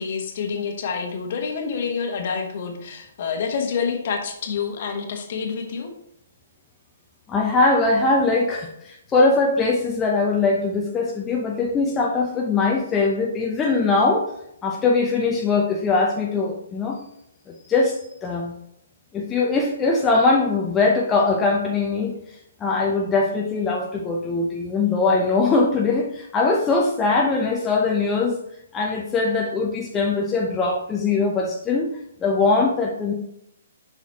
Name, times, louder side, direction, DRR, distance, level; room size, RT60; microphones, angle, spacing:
voice 1, 0.0-5.9, left 6 dB, 45° left, 4 dB, 1.3 m, -27 dB
voice 2, 7.3-14.3 14.6-17.0 17.7-18.5 19.1-22.1 22.6-28.4 28.7-31.9 32.2-33.1, left 3 dB, 15° left, -1 dB, 0.7 m, -21 dB
7.2 x 5.7 x 2.9 m, 0.77 s
figure-of-eight pair, 125°, 0 cm